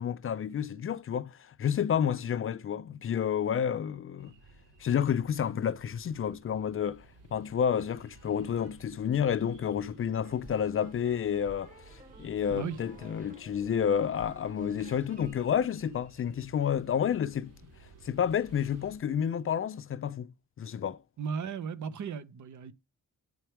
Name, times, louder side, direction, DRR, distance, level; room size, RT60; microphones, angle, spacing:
voice 1, 0.0-4.3 4.8-7.0 7.3-17.5 18.0-20.3 20.6-21.0, left 8 dB, 45° left, 0.4 m, -30 dB
sound 1, 4.2-19.0, right 3 dB, 90° right, 4.9 m, -56 dB
sound 2, 10.2-16.6, right 1 dB, 25° right, 0.9 m, -52 dB
voice 2, 21.2-22.7, right 6 dB, 75° right, 0.9 m, -36 dB
9.2 x 4.5 x 3.3 m
wide cardioid pair, 150°, 30 cm